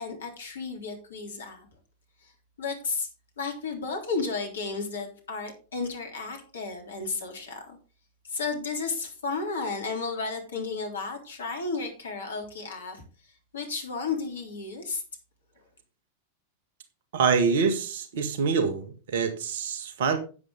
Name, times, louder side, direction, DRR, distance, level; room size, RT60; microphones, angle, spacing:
voice 1, 0.0-1.7 2.2-2.3 2.6-3.1 3.4-7.8 8.2-15.0, left 4 dB, 65° left, 3 dB, 3.4 m, -33 dB
voice 2, 17.1-20.2, right 5 dB, 55° right, 8 dB, 1.8 m, -25 dB
10.5 x 8.7 x 3.9 m, 0.36 s
figure-of-eight pair, 90°, 0 cm